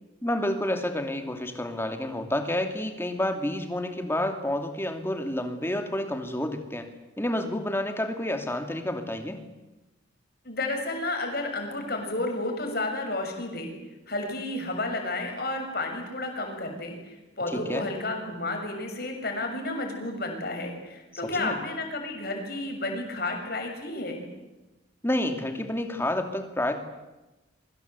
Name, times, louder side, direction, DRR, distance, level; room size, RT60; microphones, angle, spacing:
voice 1, 0.2-6.9 7.2-9.4 17.5-17.9 21.2-21.6 25.0-26.8, left 1 dB, 10° left, 6 dB, 2.6 m, -29 dB
voice 2, 10.4-13.7 14.1-24.3, left 2 dB, 50° left, 3 dB, 6.8 m, -31 dB
28.0 x 24.0 x 8.3 m, 1.1 s
head